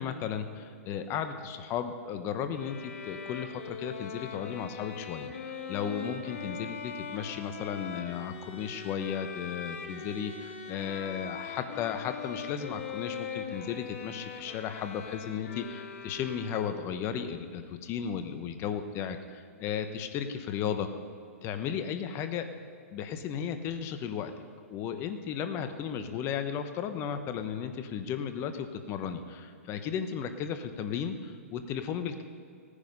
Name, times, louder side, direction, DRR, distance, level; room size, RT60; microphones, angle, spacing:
voice 1, 0.0-20.9 21.4-22.5 22.9-24.3 24.7-32.2, left 8 dB, 30° left, 8 dB, 1.1 m, -35 dB
Bowed string instrument, 2.5-17.1, left 6 dB, 65° left, 1.9 m, -41 dB
17.0 x 10.0 x 5.4 m, 2.3 s
hypercardioid pair, 130°, 8 cm